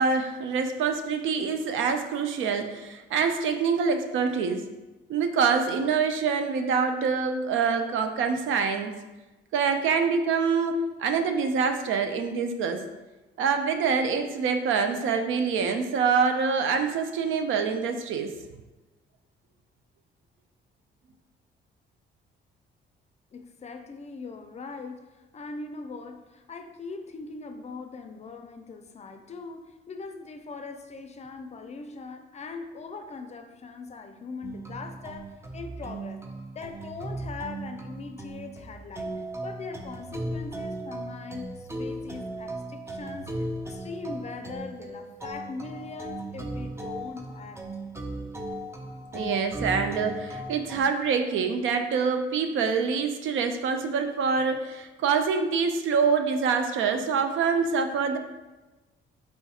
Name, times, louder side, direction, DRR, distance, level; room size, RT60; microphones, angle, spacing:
voice 1, 0.0-4.7 5.1-8.9 9.5-12.8 13.4-18.3 49.1-58.2, right 5 dB, 80° right, 6 dB, 0.5 m, -25 dB
voice 2, 23.3-36.2 36.5-47.6, left 4 dB, 35° left, 6 dB, 0.4 m, -41 dB
sound 1, 34.4-50.8, right 1 dB, 15° right, 0.6 m, -37 dB
4.4 x 2.3 x 4.1 m, 1.1 s
cardioid pair, 90°, 20 cm